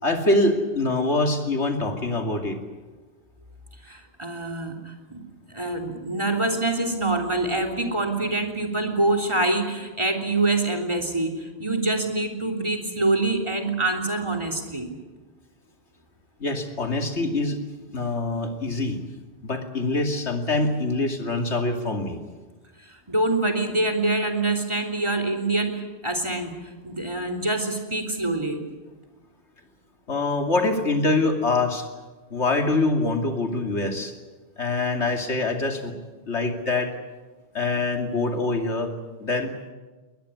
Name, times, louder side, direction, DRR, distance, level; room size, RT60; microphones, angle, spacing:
voice 1, 0.0-2.6 16.4-17.6 17.9-19.0 19.4-22.2 30.1-31.9 32.3-34.1 34.6-35.9 36.3-36.9 37.5-38.9 39.2-39.5, left 2 dB, 85° left, 4 dB, 3.0 m, -24 dB
voice 2, 3.9-5.2 5.5-14.9 22.8-28.6, right 2 dB, 25° right, 6 dB, 3.4 m, -25 dB
21.0 x 20.5 x 9.8 m, 1.3 s
omnidirectional pair, 1.1 m